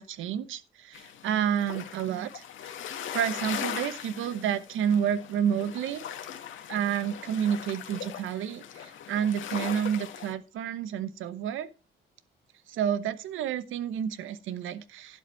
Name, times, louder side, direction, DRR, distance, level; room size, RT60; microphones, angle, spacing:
voice 1, 0.0-2.4 3.1-6.0 6.7-11.7 12.7-15.2, right 9 dB, 80° right, 1.0 m, -30 dB
sound 1, 0.9-10.3, left 9 dB, 75° left, 1.7 m, -40 dB
11.5 x 7.8 x 4.5 m
cardioid pair, 90°, 20 cm